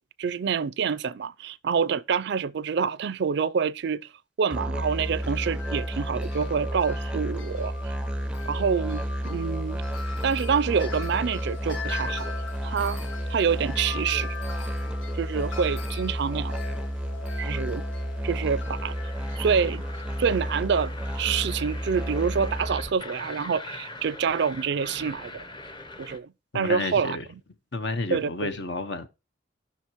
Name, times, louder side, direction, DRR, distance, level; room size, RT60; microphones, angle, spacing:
voice 1, 0.2-4.1 4.4-7.7 8.5-9.8 10.2-12.3 12.6-13.0 13.3-14.4 15.2-16.6 17.4-17.8 18.2-18.9 19.4-19.8 20.2-25.4 26.0-27.2 28.1-28.5, right 6 dB, 60° right, 0.4 m, -27 dB
Musical instrument, 4.5-22.9, equal, 5° right, 0.5 m, -31 dB
Wind chime, 4.8-22.7, left 5 dB, 85° left, 1.6 m, -42 dB
sound 1, 18.1-26.2, left 2 dB, 25° left, 0.9 m, -42 dB
voice 2, 26.5-27.3 27.7-29.1, left 2 dB, 65° left, 1.1 m, -31 dB
17.0 x 5.9 x 3.0 m
head